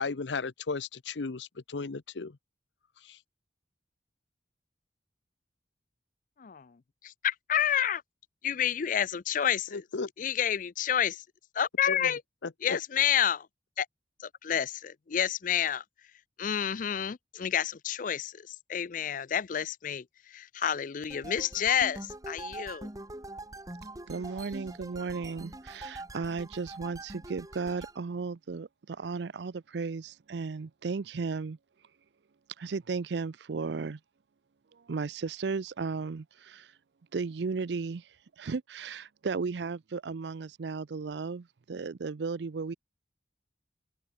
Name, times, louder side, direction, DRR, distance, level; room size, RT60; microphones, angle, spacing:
voice 1, 0.0-2.4 3.0-3.2 9.7-10.1 11.9-12.1 12.4-12.8, left 4 dB, 90° left, 0.8 m, -35 dB
voice 2, 6.4-8.0 8.4-9.8 10.2-11.2 11.5-12.2 12.6-13.5 13.8-13.9 14.2-15.8 16.4-22.9, left 9 dB, 45° left, 0.4 m, -29 dB
sound 1, 21.1-28.0, right 2 dB, 20° right, 1.9 m, -44 dB
voice 3, 24.1-31.6 32.6-34.0 34.7-36.7 37.1-38.1 38.4-42.7, right 4 dB, 70° right, 0.5 m, -35 dB
open air
head